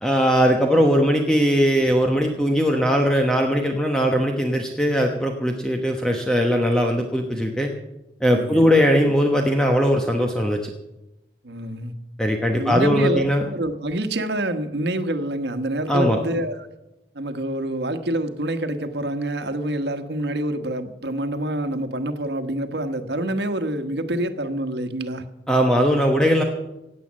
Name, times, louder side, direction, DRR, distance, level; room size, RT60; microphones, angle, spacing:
voice 1, 0.0-7.7 8.2-10.7 12.2-13.4 15.9-16.2 25.5-26.4, equal, 5° left, 2 dB, 1.0 m, -20 dB
voice 2, 8.3-8.7 11.4-11.9 12.5-16.5 17.1-25.2, right 1 dB, 80° right, 8 dB, 1.3 m, -27 dB
17.0 x 8.6 x 7.5 m, 0.94 s
head